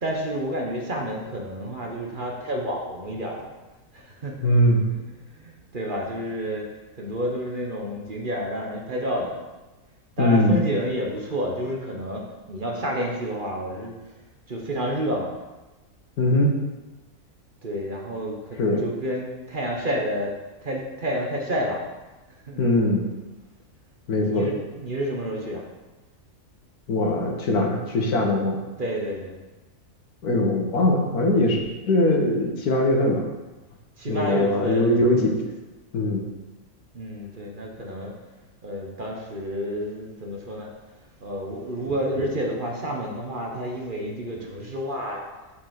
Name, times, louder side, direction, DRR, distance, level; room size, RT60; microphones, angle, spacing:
voice 1, 0.0-3.5 3.9-4.5 5.2-9.4 10.2-13.9 14.5-15.3 17.6-20.3 20.6-21.8 22.4-22.6 24.1-25.6 28.8-29.4 34.0-35.0 36.9-38.1 38.6-40.7 41.2-45.2, equal, 35° right, 0 dB, 1.2 m, -30 dB
voice 2, 4.4-4.8 10.2-10.6 16.2-16.5 18.6-18.8 22.6-23.1 24.1-24.5 26.9-28.6 30.2-31.6 31.9-33.2 34.1-35.3 35.9-36.3, left 1 dB, 85° left, 1 dB, 1.7 m, -21 dB
7.4 x 4.7 x 6.4 m, 1.1 s
omnidirectional pair, 1.6 m